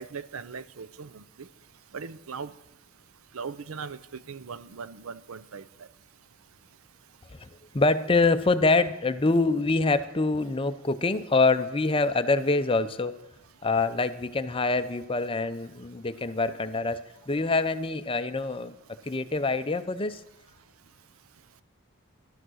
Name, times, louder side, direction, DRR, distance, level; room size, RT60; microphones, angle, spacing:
voice 1, 0.0-1.5 1.9-2.5 3.3-4.0 4.3-5.6, right 5 dB, 70° right, 15 dB, 0.6 m, -39 dB
voice 2, 7.7-13.2 13.6-17.0 17.3-18.7 19.0-20.2, left 3 dB, 25° left, 11 dB, 0.6 m, -25 dB
15.0 x 12.0 x 6.3 m, 0.93 s
head